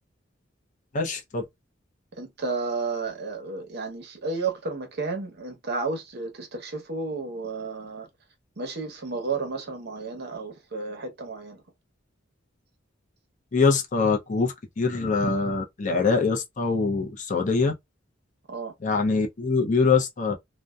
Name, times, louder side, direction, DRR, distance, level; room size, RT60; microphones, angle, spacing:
voice 1, 0.9-1.4 13.5-17.7 18.8-20.3, left 4 dB, 40° left, 0.5 m, -24 dB
voice 2, 2.2-8.1 8.6-11.6 18.5-18.7, right 4 dB, 55° right, 0.8 m, -32 dB
2.6 x 2.1 x 2.2 m
head